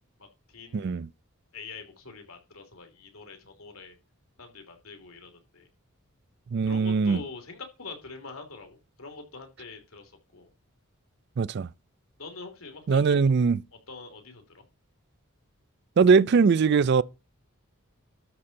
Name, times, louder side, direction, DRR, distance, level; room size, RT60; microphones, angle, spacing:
voice 1, 0.2-1.0 1.5-4.0 4.4-5.7 6.7-10.5 12.2-13.3 13.9-14.6, left 4 dB, 80° left, 2.9 m, -44 dB
voice 2, 0.7-1.1 6.5-7.2 11.4-11.7 12.9-13.6 16.0-17.0, right 5 dB, 50° right, 0.4 m, -21 dB
12.5 x 4.3 x 5.3 m
head